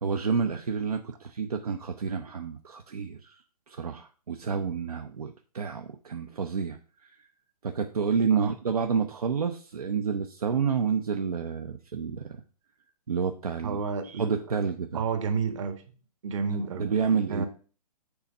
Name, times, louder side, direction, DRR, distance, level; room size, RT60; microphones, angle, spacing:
voice 1, 0.0-3.4 3.7-7.1 7.6-12.4 13.1-13.8 14.1-15.0 16.8-17.5, right 6 dB, 70° right, 5 dB, 0.8 m, -29 dB
voice 2, 13.6-14.4 14.9-15.8 16.2-16.9 17.3-17.5, right 5 dB, 50° right, 9 dB, 1.5 m, -30 dB
7.0 x 4.3 x 6.6 m, 0.40 s
figure-of-eight pair, 120°, 20 cm